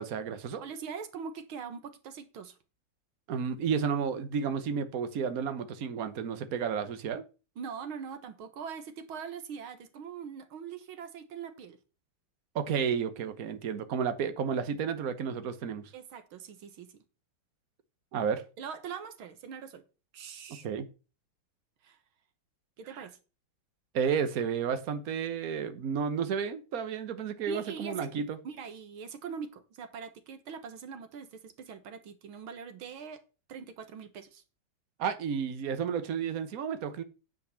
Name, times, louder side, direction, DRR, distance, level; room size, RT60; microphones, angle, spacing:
voice 1, 0.0-0.6 3.3-7.2 12.5-15.9 18.1-18.4 20.6-20.9 22.9-23.1 23.9-28.4 35.0-37.0, right 7 dB, 50° right, 1.4 m, -32 dB
voice 2, 0.6-2.6 7.6-11.8 15.9-17.0 18.6-19.8 20.1-20.7 21.8-22.0 22.8-23.2 27.5-28.1 28.4-33.2 33.5-34.4, right 6 dB, 85° right, 2.1 m, -42 dB
9.3 x 5.4 x 6.9 m
omnidirectional pair, 2.2 m